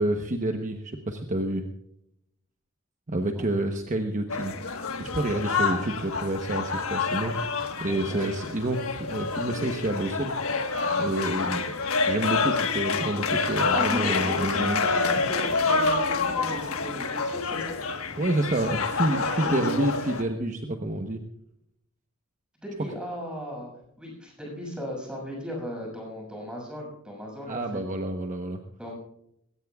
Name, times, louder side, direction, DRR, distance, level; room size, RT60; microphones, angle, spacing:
voice 1, 0.0-1.6 3.1-4.5 5.0-7.3 7.8-10.3 10.9-11.8 12.1-14.8 18.2-21.2 27.5-28.6, right 1 dB, 35° right, 4 dB, 1.0 m, -28 dB
sound 1, 4.3-20.2, left 4 dB, 75° left, 1.4 m, -28 dB
voice 2, 7.9-8.3 13.7-17.8 19.3-19.9 22.6-23.7 24.0-27.8 28.8-28.9, equal, 5° right, -1 dB, 6.5 m, -36 dB
21.0 x 17.5 x 2.4 m, 0.77 s
head